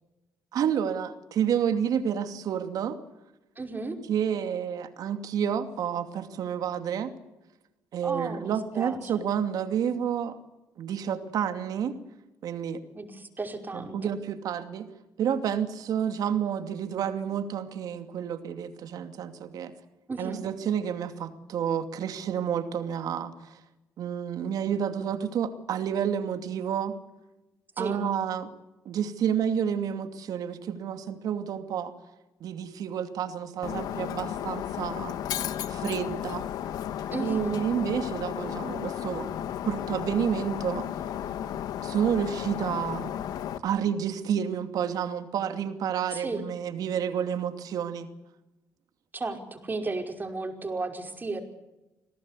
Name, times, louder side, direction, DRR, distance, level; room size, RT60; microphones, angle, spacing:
voice 1, 0.5-3.0 4.1-7.1 7.9-10.4 10.8-12.0 12.4-12.8 13.7-14.9 15.2-19.7 20.2-23.5 24.0-27.0 27.8-28.5 28.8-31.9 32.4-35.2 35.7-36.5 37.2-39.3 39.6-40.9 41.8-43.1 43.6-48.1, right 8 dB, 70° right, 8 dB, 2.6 m, -30 dB
voice 2, 3.6-4.0 8.0-9.3 12.9-14.2 20.1-20.5 27.8-28.1 37.1-37.6 46.1-46.5 49.1-51.4, right 3 dB, 30° right, 4 dB, 5.3 m, -34 dB
Shatter, 33.6-43.6, left 10 dB, 80° left, 1.5 m, -34 dB
27.0 x 18.0 x 8.4 m, 1.0 s
cardioid pair, 75°, 7 cm